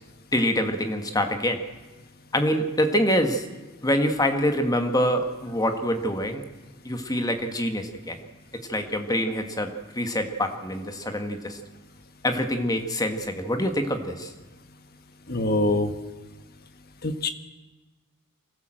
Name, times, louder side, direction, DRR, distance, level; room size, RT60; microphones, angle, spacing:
voice 1, 0.3-1.6 2.3-3.4 3.8-6.4 6.8-8.2 8.7-11.6 12.2-14.3, equal, 15° left, 6 dB, 1.6 m, -25 dB
voice 2, 15.3-15.9 17.0-17.3, left 2 dB, 45° left, 8 dB, 1.5 m, -24 dB
24.0 x 16.0 x 7.8 m, 1.2 s
head